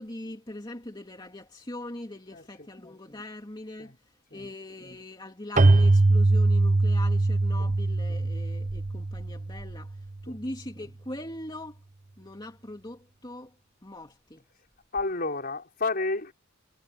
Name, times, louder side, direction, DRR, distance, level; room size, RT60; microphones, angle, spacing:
voice 1, 0.0-11.8 12.2-13.5 13.8-14.5, left 1 dB, 20° left, 2.8 m, -41 dB
Keyboard (musical), 5.6-10.1, right 2 dB, 40° right, 0.9 m, -22 dB
voice 2, 14.9-16.3, left 3 dB, 45° left, 5.2 m, -30 dB
head